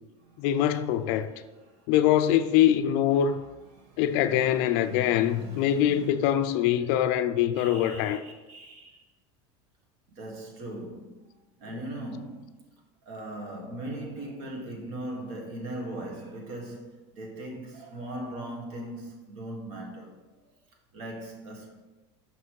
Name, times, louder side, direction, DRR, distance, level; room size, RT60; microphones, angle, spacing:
voice 1, 0.4-1.3 1.9-3.4 4.0-8.2, left 11 dB, 55° left, 0.4 m, -23 dB
voice 2, 3.7-6.2 7.6-9.0 10.1-11.3 11.6-12.6 13.0-20.2 20.9-21.7, right 1 dB, 50° right, 1.6 m, -40 dB
6.0 x 5.6 x 4.7 m
cardioid pair, 165°, 14 cm